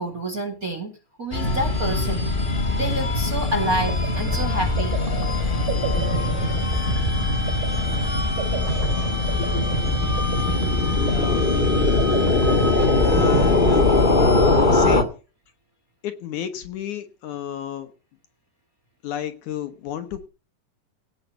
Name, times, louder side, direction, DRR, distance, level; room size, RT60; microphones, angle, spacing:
voice 1, 0.0-2.3 2.7-5.0 12.7-12.9, right 1 dB, 30° right, 2.0 m, -28 dB
sound 1, 1.3-15.0, left 3 dB, 30° left, 0.9 m, -21 dB
sound 2, 3.6-14.4, right 7 dB, 75° right, 4.2 m, -32 dB
voice 2, 11.0-11.4 13.0-13.9 14.7-15.2 16.0-17.9 19.0-20.3, left 10 dB, 70° left, 2.4 m, -32 dB
17.0 x 5.7 x 8.0 m
omnidirectional pair, 3.9 m